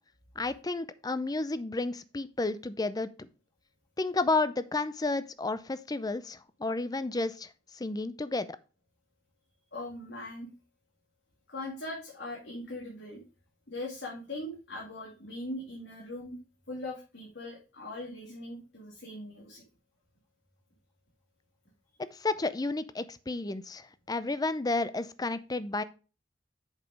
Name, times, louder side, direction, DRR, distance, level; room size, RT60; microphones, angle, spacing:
voice 1, 0.4-3.3 4.0-7.5 7.8-8.5 22.1-25.8, left 3 dB, 20° left, 14 dB, 0.5 m, -31 dB
voice 2, 9.7-10.5 11.5-13.2 13.7-16.4 16.7-19.6, left 1 dB, 65° left, -4 dB, 2.5 m, -40 dB
7.5 x 5.2 x 4.8 m, 0.33 s
head